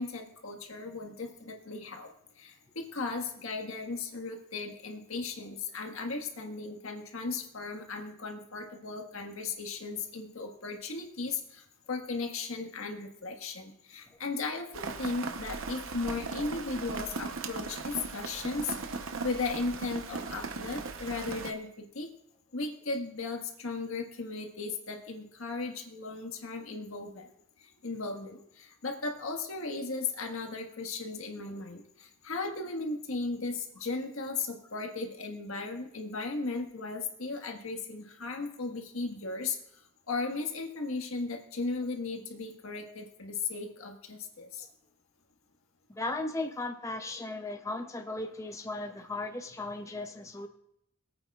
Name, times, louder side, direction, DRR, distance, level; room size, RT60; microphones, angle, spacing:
voice 1, 0.0-22.1 22.5-27.3 27.6-39.6 40.1-44.7, left 3 dB, 80° left, 3 dB, 1.6 m, -36 dB
Rain, 14.7-21.5, right 4 dB, 70° right, 0.8 m, -38 dB
voice 2, 45.9-50.5, left 2 dB, 15° left, 5 dB, 0.5 m, -36 dB
22.5 x 8.7 x 2.4 m, 0.73 s
head